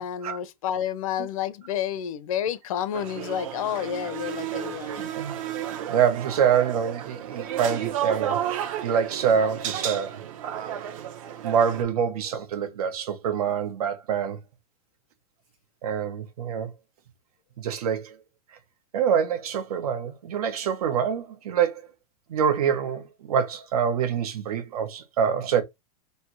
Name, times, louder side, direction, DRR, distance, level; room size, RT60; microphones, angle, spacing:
voice 1, 0.0-5.1, left 10 dB, 70° left, 0.7 m, -30 dB
sound 1, 2.9-11.8, right 10 dB, 65° right, 0.9 m, -32 dB
voice 2, 5.0-5.4 5.9-8.4 8.8-10.2 10.8-10.9 11.4-14.4 15.8-16.7 17.6-18.2 18.9-21.9 22.3-25.6, right 7 dB, 90° right, 1.1 m, -25 dB
3.4 x 2.8 x 4.5 m
supercardioid pair, 165°, 19 cm